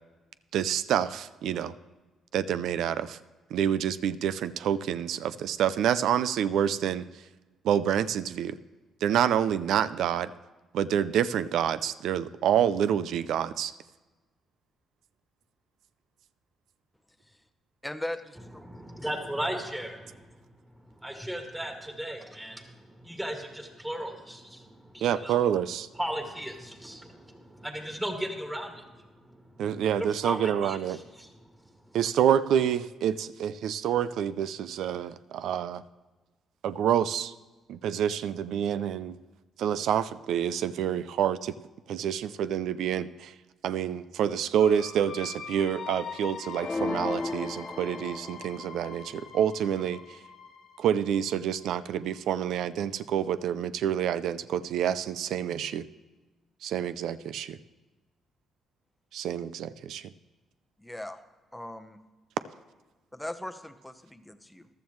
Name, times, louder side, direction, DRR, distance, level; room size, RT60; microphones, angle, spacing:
voice 1, 0.5-1.7 2.3-3.2 3.5-7.0 7.6-8.6 9.0-10.3 10.7-13.7 25.0-25.9 29.6-31.0 31.9-35.8 36.6-37.3 37.7-39.2 39.6-41.6 41.9-43.3 43.6-50.0 50.8-55.9 56.6-57.6 59.1-60.1, right 9 dB, 80° right, 15 dB, 0.4 m, -27 dB
voice 2, 17.8-18.6 60.8-61.2 61.5-62.0 63.1-64.7, left 1 dB, 5° left, 10 dB, 0.8 m, -39 dB
voice 3, 18.6-20.3 20.9-25.4 26.0-29.4 30.0-31.3, right 1 dB, 10° right, 3 dB, 2.1 m, -36 dB
sound 1, 44.6-52.2, left 6 dB, 85° left, 1.5 m, -43 dB
sound 2, 46.6-48.7, left 3 dB, 20° left, 0.3 m, -33 dB
14.5 x 12.5 x 3.1 m, 1.2 s
cardioid pair, 90°, 0 cm